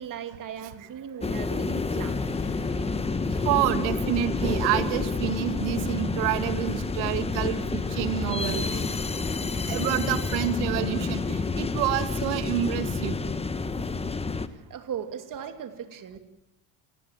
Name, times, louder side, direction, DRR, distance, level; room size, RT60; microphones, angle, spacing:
voice 1, 0.0-2.2 14.5-16.2, right 8 dB, 40° right, 7 dB, 2.9 m, -38 dB
sound 1, 1.2-14.5, left 4 dB, 10° left, 1.3 m, -29 dB
sound 2, 2.0-12.4, left 7 dB, 85° left, 5.7 m, -49 dB
voice 2, 3.4-8.9 9.7-13.2, right 12 dB, 75° right, 9 dB, 2.6 m, -28 dB
27.0 x 18.5 x 7.5 m, 0.82 s
supercardioid pair, 110°, 50 cm